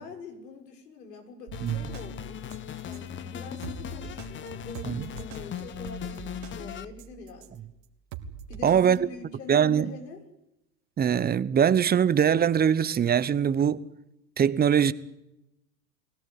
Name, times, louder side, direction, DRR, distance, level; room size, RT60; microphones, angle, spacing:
voice 1, 0.0-2.4 2.8-7.6 8.5-10.2, left 3 dB, 75° left, 6.0 m, -44 dB
sound 1, 1.5-6.8, left 9 dB, 25° left, 1.1 m, -38 dB
sound 2, 1.5-3.1 3.6-7.6 8.1-9.0, right 6 dB, 50° right, 3.2 m, -43 dB
voice 2, 8.6-9.0 9.5-9.9 11.0-13.8 14.4-14.9, right 8 dB, 20° right, 1.0 m, -22 dB
23.5 x 17.5 x 9.8 m
hypercardioid pair, 100°, 49 cm